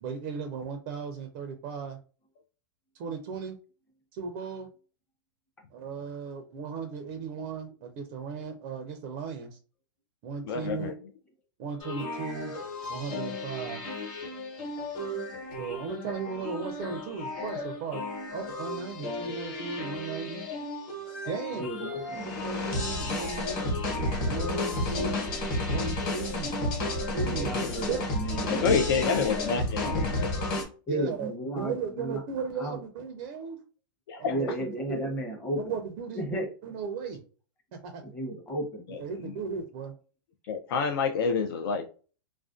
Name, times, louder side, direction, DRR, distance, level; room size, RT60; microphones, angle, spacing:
voice 1, 0.0-2.0 2.9-3.6 4.1-4.7 5.7-9.6 10.2-10.9 11.6-12.5 12.9-13.8 15.6-18.0 18.3-20.4 21.2-21.7 22.3-23.8 24.2-25.2 25.7-26.5 27.1-27.5 27.9-28.0 30.9-33.6 34.2-34.5 35.6-37.2 37.8-38.0 39.0-39.9, right 5 dB, 40° right, 5 dB, 0.4 m, -36 dB
voice 2, 10.4-10.9 28.5-30.4 34.1-34.4 38.9-39.3 40.5-41.9, left 5 dB, 75° left, 5 dB, 0.4 m, -28 dB
sound 1, 11.8-30.6, left 2 dB, 40° left, 1.0 m, -32 dB
voice 3, 21.5-22.3 27.2-29.5 29.8-29.9 30.9-32.2 32.6-32.8 34.3-35.6 36.2-36.5 38.0-38.8, right 1 dB, 15° left, 2 dB, 0.7 m, -34 dB
2.4 x 2.1 x 2.4 m, 0.37 s
supercardioid pair, 150°, 12 cm